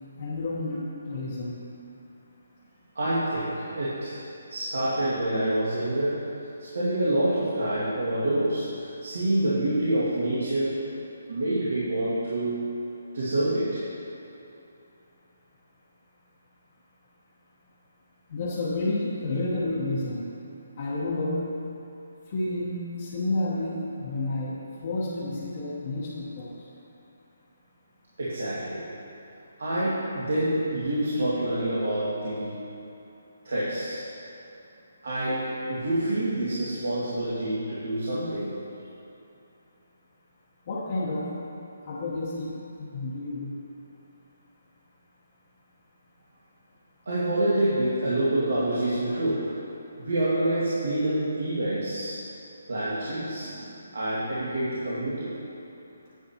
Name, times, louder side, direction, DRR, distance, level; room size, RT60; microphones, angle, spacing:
voice 1, 0.2-1.6 18.3-20.3 20.8-21.5 22.3-26.5 40.7-41.3 41.8-43.5, left 2 dB, 30° left, -7 dB, 0.9 m, -30 dB
voice 2, 3.0-4.2 4.5-6.3 6.7-10.8 11.3-12.7 13.1-13.8 28.2-28.9 29.6-32.6 33.4-34.0 35.0-38.6 47.1-49.6 50.0-52.2 52.7-53.7 53.9-55.3, right 1 dB, 80° right, -10 dB, 1.9 m, -27 dB
9.4 x 8.1 x 2.8 m, 2.8 s
hypercardioid pair, 175°, 0 cm